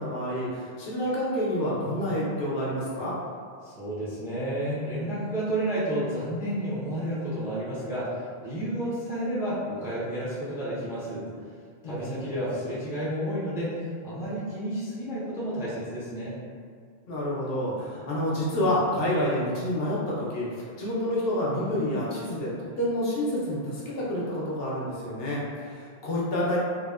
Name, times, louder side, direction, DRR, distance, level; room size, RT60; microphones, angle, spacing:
voice 1, 0.0-3.1 11.8-12.2 17.1-26.6, left 1 dB, 70° left, -6 dB, 0.8 m, -28 dB
voice 2, 3.6-11.2 11.8-16.4, right 1 dB, 5° right, -9 dB, 0.4 m, -31 dB
2.7 x 2.1 x 2.3 m, 2.1 s
omnidirectional pair, 1.1 m